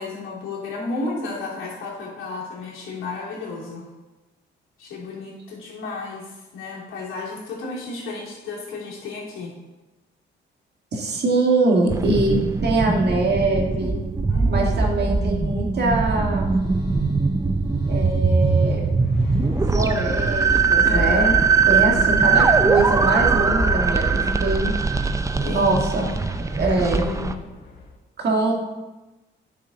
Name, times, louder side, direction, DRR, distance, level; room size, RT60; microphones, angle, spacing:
voice 1, 0.0-3.8 4.8-9.5 14.3-14.9 20.8-21.3 25.4-25.7 26.0-26.2 26.6-27.4 28.3-28.4, left 3 dB, 85° left, -4 dB, 2.9 m, -33 dB
voice 2, 10.9-14.0 14.5-16.5 17.9-18.8 19.7-21.4 21.7-24.0 24.4-24.7 25.4-26.1 26.6-27.1 28.2-28.6, right 2 dB, 55° right, 0 dB, 2.1 m, -22 dB
sound 1, 11.9-27.3, right 4 dB, 15° right, 0.5 m, -21 dB
sound 2, 16.1-27.9, left 3 dB, 60° left, 1.5 m, -34 dB
9.9 x 6.7 x 4.0 m, 1.1 s
cardioid pair, 90°, 20 cm